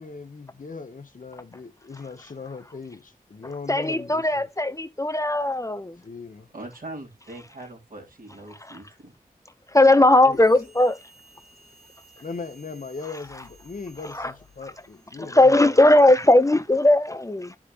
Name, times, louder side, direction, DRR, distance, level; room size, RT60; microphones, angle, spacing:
voice 1, 0.0-4.5 6.0-6.5 10.2-10.4 12.2-15.9, left 4 dB, 60° left, 1.0 m, -39 dB
voice 2, 3.4-6.0 8.6-8.8 9.7-11.0 14.0-14.3 15.2-17.6, left 1 dB, 20° left, 0.5 m, -19 dB
voice 3, 6.5-9.1, right 2 dB, 70° right, 2.7 m, -41 dB
sound 1, 10.3-15.2, right 2 dB, 85° right, 3.0 m, -54 dB
11.5 x 4.9 x 2.5 m
wide cardioid pair, 65°, 15 cm